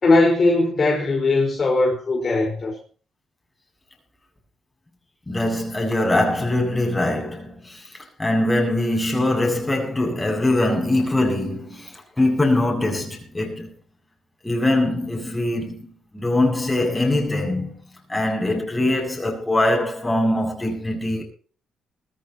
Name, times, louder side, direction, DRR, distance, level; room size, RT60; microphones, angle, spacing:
voice 1, 0.0-2.7, left 2 dB, 40° left, 4.8 m, -19 dB
voice 2, 5.3-7.9 8.2-13.7 14.4-17.7 18.1-21.2, left 1 dB, 15° left, 7.7 m, -22 dB
21.0 x 14.5 x 3.0 m
cardioid pair, 90°, 0 cm